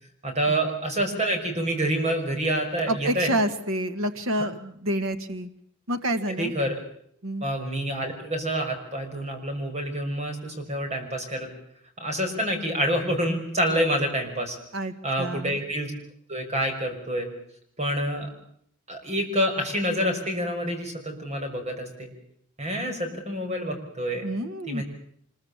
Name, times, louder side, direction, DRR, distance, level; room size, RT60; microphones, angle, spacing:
voice 1, 0.2-3.3 4.3-4.5 6.4-6.7 7.4-11.5 12.0-14.6 15.0-15.9 16.3-17.3 17.8-18.3 18.9-22.1 22.6-24.3 24.7-24.8, equal, 30° right, 4 dB, 5.9 m, -27 dB
voice 2, 2.9-5.5 5.9-6.5 7.2-7.5 14.7-15.6 24.2-24.8, right 1 dB, 75° right, 8 dB, 1.7 m, -28 dB
25.5 x 22.5 x 7.3 m, 0.68 s
head